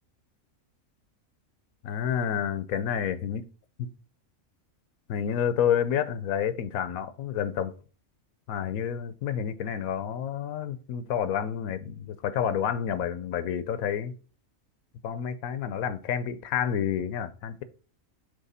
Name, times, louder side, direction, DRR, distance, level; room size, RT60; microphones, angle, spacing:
voice 1, 1.8-3.4 3.8-3.9 5.1-7.7 8.5-14.1 15.0-17.6, left 8 dB, 90° left, 1.1 m, -29 dB
7.5 x 3.2 x 4.1 m
omnidirectional pair, 1.4 m